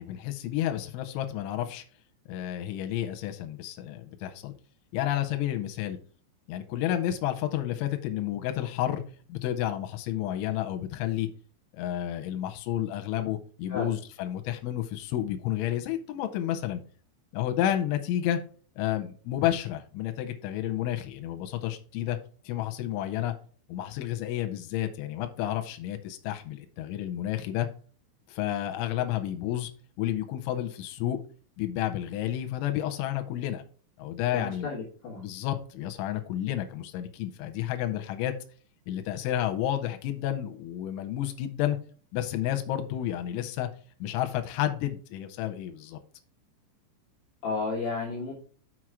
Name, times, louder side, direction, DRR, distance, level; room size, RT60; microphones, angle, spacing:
voice 1, 0.0-1.8 2.3-4.5 4.9-6.0 6.5-9.0 9.3-11.3 11.7-16.8 17.3-18.4 18.8-22.2 22.5-23.3 23.7-27.7 28.3-29.7 30.0-31.2 31.6-33.6 34.0-34.7 35.2-38.3 38.9-41.8 42.1-43.7 44.0-46.0, left 12 dB, 90° left, 6 dB, 3.1 m, -31 dB
voice 2, 34.3-35.2 47.4-48.3, left 4 dB, 65° left, -3 dB, 2.5 m, -32 dB
6.2 x 6.2 x 4.7 m, 0.42 s
omnidirectional pair, 5.5 m